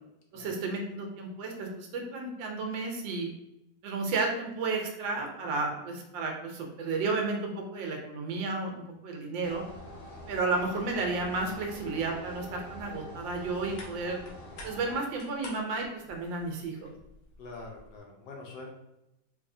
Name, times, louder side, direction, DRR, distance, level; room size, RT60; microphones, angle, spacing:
voice 1, 0.3-3.3 3.8-9.6 10.3-14.2 14.6-16.9, right 3 dB, 80° right, 2 dB, 1.4 m, -32 dB
sound 1, 9.4-15.0, equal, 50° left, 1.2 m, -45 dB
sound 2, 12.8-18.0, left 2 dB, 90° left, 1.6 m, -51 dB
voice 2, 17.4-18.7, left 3 dB, 70° left, 0 dB, 1.3 m, -44 dB
3.9 x 2.6 x 2.6 m, 0.87 s
omnidirectional pair, 2.1 m